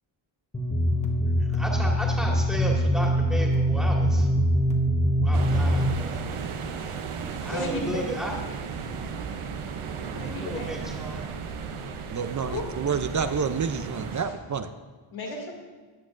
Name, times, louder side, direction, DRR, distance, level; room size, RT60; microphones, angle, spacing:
sound 1, 0.5-5.9, equal, 15° left, 1.1 m, -23 dB
voice 1, 1.4-4.3 5.2-6.2 7.4-8.3 10.1-11.3, right 1 dB, ahead, -2 dB, 2.0 m, -34 dB
sound 2, 5.3-14.2, right 6 dB, 85° right, 0.9 m, -35 dB
voice 2, 7.3-8.1 9.6-10.7 12.5-12.7 14.1-14.4 15.1-15.5, left 2 dB, 75° left, 0 dB, 2.5 m, -35 dB
voice 3, 12.1-14.7, right 6 dB, 40° right, 9 dB, 0.5 m, -28 dB
14.5 x 9.7 x 2.6 m, 1.4 s
wide cardioid pair, 125°, 49 cm